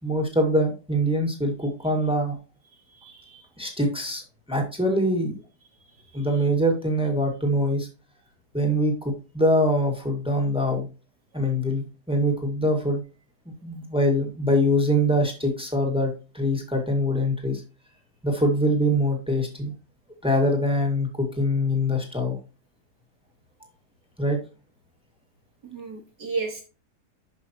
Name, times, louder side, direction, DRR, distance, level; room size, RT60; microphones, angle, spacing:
voice 1, 0.0-2.4 3.6-4.2 4.5-5.3 6.1-7.9 8.5-10.9 11.3-13.0 13.6-17.6 18.2-19.7 20.2-22.4 24.2-24.4, equal, 5° right, 2 dB, 2.0 m, -23 dB
voice 2, 2.9-3.4 6.0-6.3 25.6-26.6, right 4 dB, 85° right, -2 dB, 3.8 m, -34 dB
11.5 x 5.6 x 3.0 m, 0.32 s
omnidirectional pair, 1.8 m